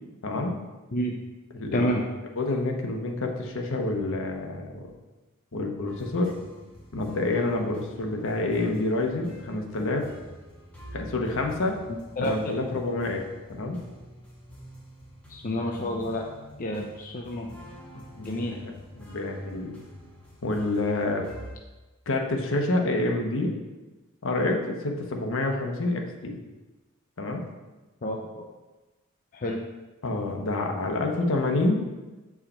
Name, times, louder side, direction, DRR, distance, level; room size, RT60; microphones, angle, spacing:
voice 1, 0.2-0.6 1.5-1.9 2.4-4.8 5.5-6.3 6.9-10.1 10.9-11.8 12.2-13.2 13.5-13.8 17.9-19.8 20.4-21.2 22.1-23.5 24.2-26.4 27.2-27.4 30.0-31.8, left 2 dB, 65° left, 2 dB, 1.0 m, -28 dB
voice 2, 1.7-2.0 12.2-12.6 15.3-16.3 16.6-17.6 18.2-18.5 28.0-28.5 29.3-29.6, equal, 40° left, 0 dB, 0.6 m, -29 dB
sound 1, 5.9-21.5, equal, 5° left, 1.8 m, -47 dB
7.8 x 4.7 x 4.3 m, 1.2 s
head